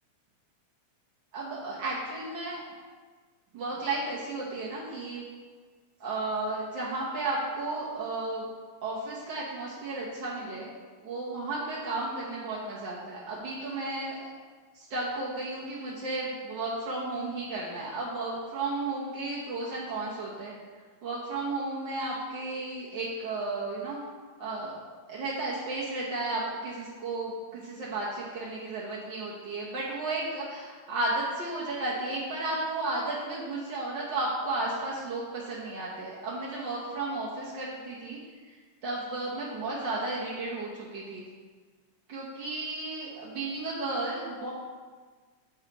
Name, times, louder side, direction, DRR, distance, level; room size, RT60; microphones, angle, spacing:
voice 1, 1.3-2.7 3.5-5.3 6.0-8.5 8.8-14.3 14.7-20.5 21.0-24.0 24.4-24.7 25.1-41.3 42.1-44.5, right 2 dB, 60° right, -6 dB, 1.3 m, -33 dB
9.5 x 7.1 x 3.0 m, 1.5 s
omnidirectional pair, 3.4 m